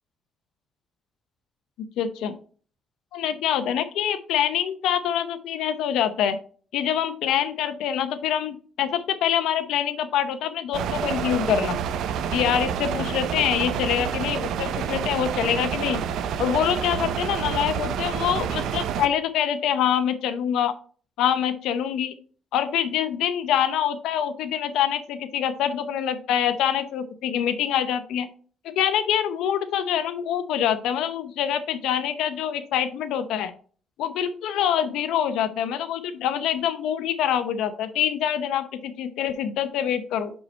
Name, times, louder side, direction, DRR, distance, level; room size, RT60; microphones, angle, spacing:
voice 1, 1.8-2.4 3.1-6.4 6.7-11.8 12.3-16.0 16.4-20.7 21.2-22.2 22.5-28.3 28.6-33.5 34.0-40.3, left 9 dB, 90° left, 11 dB, 0.7 m, -25 dB
sound 1, 10.7-19.1, right 8 dB, 80° right, 0.6 m, -28 dB
5.6 x 5.4 x 4.2 m, 0.42 s
cardioid pair, 90°, 0 cm